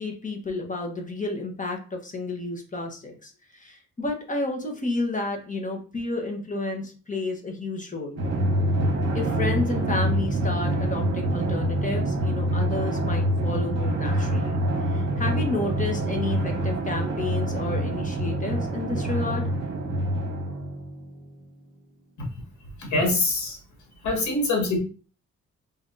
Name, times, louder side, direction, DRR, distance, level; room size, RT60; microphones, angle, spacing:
voice 1, 0.0-8.2 9.1-14.6 14.9-19.5, left 2 dB, 25° left, 2 dB, 1.2 m, -31 dB
Drum, 8.2-21.2, right 1 dB, 40° right, 1.7 m, -26 dB
voice 2, 22.9-23.6 24.0-24.8, left 2 dB, 70° left, 0 dB, 2.0 m, -23 dB
4.0 x 3.5 x 2.7 m, 0.36 s
cardioid pair, 90°, 30 cm